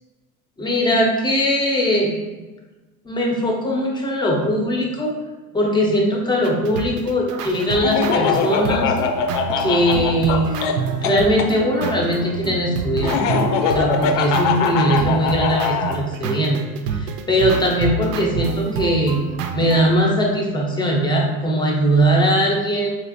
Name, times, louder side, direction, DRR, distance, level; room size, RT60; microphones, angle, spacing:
voice 1, 0.6-2.5 3.0-5.1 5.5-8.9 9.6-19.2 19.5-23.0, equal, 10° left, -1 dB, 0.5 m, -20 dB
sound 1, 6.4-20.0, right 5 dB, 70° right, 0.6 m, -28 dB
Laughter, 7.8-11.5 13.0-16.0, left 6 dB, 70° left, 0.6 m, -22 dB
4.1 x 2.5 x 2.6 m, 1.2 s
hypercardioid pair, 95°, 49 cm